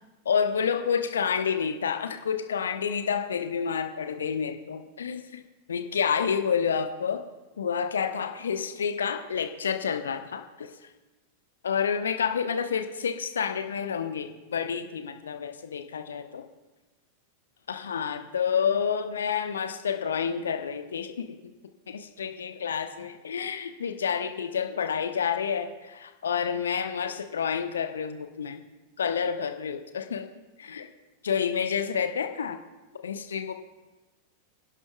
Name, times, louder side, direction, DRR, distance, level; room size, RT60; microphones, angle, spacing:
voice 1, 0.2-5.4 5.7-7.2 7.6-10.7 11.6-16.4 17.7-21.4 21.9-28.6 29.0-30.3 30.6-30.9 31.2-32.6 33.0-33.5, left 7 dB, 70° left, 7 dB, 0.9 m, -29 dB
26.0 x 11.0 x 2.3 m, 1.1 s
figure-of-eight pair, 90°, 0 cm